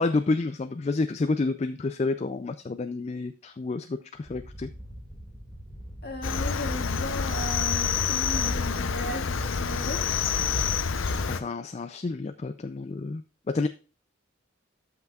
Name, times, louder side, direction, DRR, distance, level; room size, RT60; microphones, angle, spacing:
voice 1, 0.0-4.7 11.3-13.2 13.5-13.7, left 3 dB, 30° left, 10 dB, 0.3 m, -29 dB
sound 1, 4.1-9.9, equal, ahead, 2.0 m, -44 dB
voice 2, 6.0-10.0, left 1 dB, 50° left, 1 dB, 1.9 m, -36 dB
Cricket, 6.2-11.4, left 5 dB, 75° left, 0.6 m, -27 dB
13.0 x 5.8 x 2.4 m, 0.36 s
head